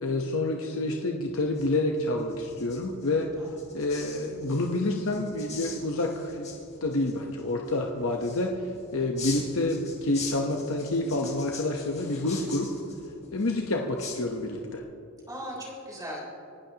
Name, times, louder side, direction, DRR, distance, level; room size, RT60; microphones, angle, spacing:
voice 1, 0.0-3.3 3.7-6.5 6.8-8.7 8.9-12.7 13.3-14.8, left 2 dB, 60° left, 1 dB, 1.0 m, -28 dB
sound 1, 1.2-14.8, left 5 dB, 30° left, 3.0 m, -44 dB
voice 2, 3.4-3.7 9.1-9.5 15.3-16.2, equal, 15° right, -3 dB, 3.5 m, -40 dB
27.5 x 11.5 x 2.9 m, 2.8 s
head